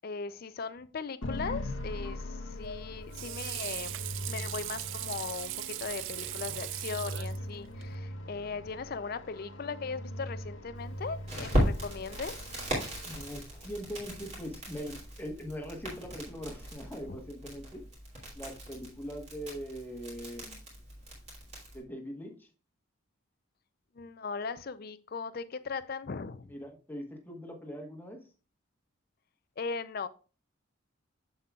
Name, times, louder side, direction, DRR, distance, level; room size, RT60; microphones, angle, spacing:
voice 1, 0.0-3.9 4.3-12.4 17.1-17.2 24.0-26.5 29.6-30.1, left 5 dB, 45° left, 14 dB, 0.4 m, -38 dB
sound 1, 1.2-13.4, left 1 dB, 65° left, 0.9 m, -41 dB
Water / Sink (filling or washing), 2.5-8.0, right 15 dB, 65° right, 0.3 m, -39 dB
Crackle, 11.3-21.8, equal, 30° right, 2.8 m, -37 dB
voice 2, 13.0-17.8 18.3-20.6 21.7-22.5 26.5-28.2, equal, 10° left, 2 dB, 1.2 m, -41 dB
7.4 x 7.2 x 2.3 m, 0.36 s
head